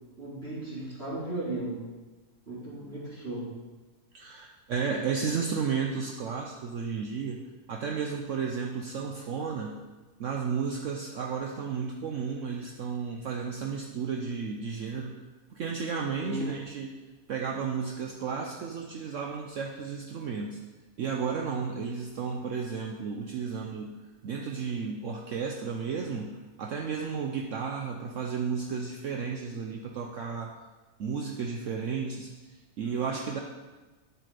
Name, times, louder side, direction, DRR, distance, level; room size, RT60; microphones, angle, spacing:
voice 1, 0.2-1.8 2.5-3.5 16.2-16.5 32.8-32.9, right 2 dB, 40° right, -11 dB, 2.9 m, -35 dB
voice 2, 4.1-7.4 7.7-9.8 10.2-15.1 15.5-17.0 17.3-20.6 21.0-24.0 24.2-30.6 31.0-32.3 32.8-33.4, right 6 dB, 65° right, 1 dB, 0.9 m, -33 dB
9.3 x 7.6 x 3.3 m, 1.2 s
omnidirectional pair, 1.6 m